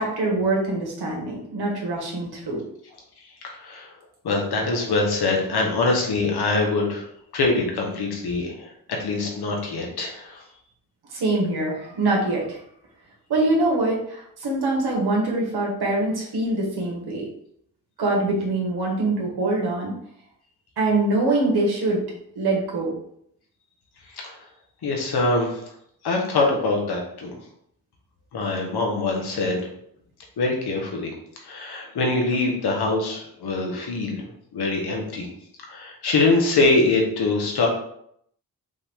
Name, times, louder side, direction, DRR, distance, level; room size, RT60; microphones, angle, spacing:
voice 1, 0.0-2.6 11.1-12.6 13.3-17.3 18.0-19.9 20.8-22.0 22.4-22.9, right 2 dB, 75° right, -2 dB, 1.7 m, -24 dB
voice 2, 3.4-3.9 4.2-7.0 7.3-10.4 24.1-24.4 24.8-25.6 26.0-27.4 28.3-29.6 30.4-31.1 31.4-35.3 35.7-37.7, left 3 dB, 80° left, 0 dB, 1.3 m, -24 dB
5.4 x 2.6 x 3.7 m, 0.70 s
cardioid pair, 55°, 39 cm